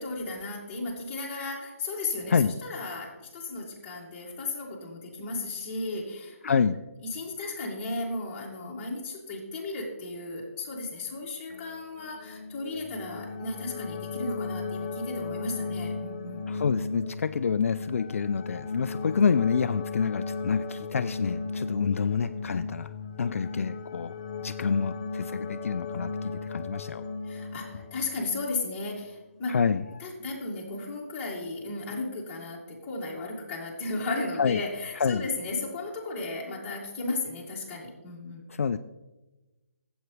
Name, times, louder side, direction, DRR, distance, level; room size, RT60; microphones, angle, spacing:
voice 1, 0.0-2.4 2.6-6.6 7.0-16.4 27.2-29.6 30.0-38.5, left 3 dB, 20° left, -4 dB, 2.0 m, -35 dB
voice 2, 6.4-6.8 16.5-24.1 24.4-27.0 29.5-29.8 34.4-34.6 34.9-35.3 38.5-38.8, left 6 dB, 65° left, 11 dB, 0.4 m, -27 dB
sound 1, 11.5-28.8 29.9-30.0, left 4 dB, 35° left, 0.7 m, -36 dB
13.0 x 8.0 x 3.2 m, 1.1 s
hypercardioid pair, 160°, 8 cm